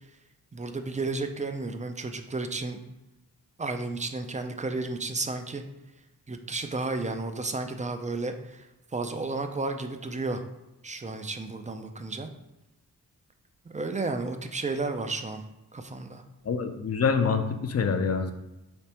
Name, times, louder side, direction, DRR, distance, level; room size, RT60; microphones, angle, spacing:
voice 1, 0.5-2.8 3.6-5.6 6.3-8.7 8.9-10.4 10.8-12.3 13.7-15.4 15.7-16.2, right 3 dB, 20° right, 7 dB, 0.3 m, -32 dB
voice 2, 16.5-18.3, left 5 dB, 45° left, 7 dB, 0.4 m, -26 dB
4.0 x 3.4 x 2.8 m, 0.98 s
wide cardioid pair, 70°, 36 cm